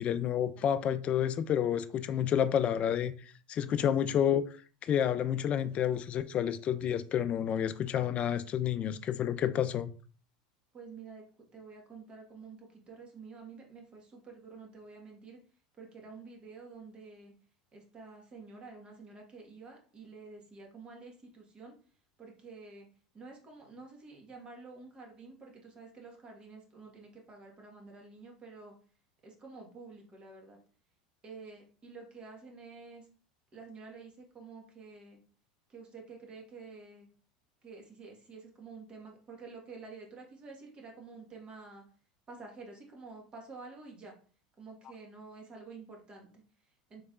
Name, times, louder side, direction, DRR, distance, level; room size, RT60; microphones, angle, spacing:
voice 1, 0.0-3.1 3.5-4.4 4.8-9.9, left 9 dB, 40° left, 0.4 m, -29 dB
voice 2, 10.7-11.2 11.5-15.4 15.8-17.3 17.7-21.7 22.2-22.9 23.1-28.7 29.2-30.6 31.2-33.1 33.5-35.2 35.7-37.1 37.6-41.8 42.3-44.2 44.6-47.0, right 4 dB, 30° right, 1.5 m, -49 dB
4.0 x 3.3 x 2.5 m
hypercardioid pair, 85°, 3 cm